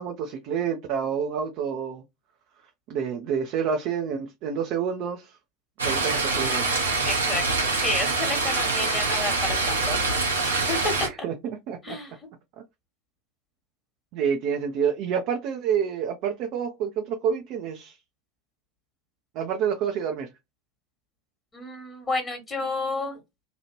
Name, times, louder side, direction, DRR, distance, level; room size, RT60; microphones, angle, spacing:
voice 1, 0.0-2.0 2.9-5.4 5.8-6.8 11.0-11.3 11.7-12.0 14.1-18.0 19.3-20.3, right 7 dB, 50° right, 0.5 m, -28 dB
sound 1, 5.8-11.1, right 3 dB, 80° right, 0.9 m, -25 dB
voice 2, 7.0-10.8 11.8-12.2 21.5-23.2, left 2 dB, 20° left, 1.3 m, -31 dB
2.9 x 2.4 x 3.0 m
figure-of-eight pair, 80°, 0 cm